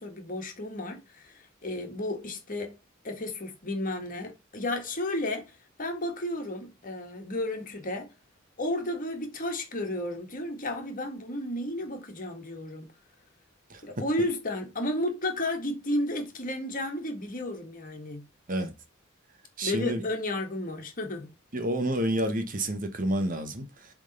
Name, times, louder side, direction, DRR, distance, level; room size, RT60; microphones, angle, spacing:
voice 1, 0.0-2.8 3.0-8.1 8.6-12.9 13.8-18.2 19.6-21.3, left 1 dB, 40° left, 1.8 m, -33 dB
voice 2, 19.6-20.0 21.5-23.9, right 1 dB, 40° right, 1.2 m, -29 dB
7.2 x 3.7 x 5.3 m
head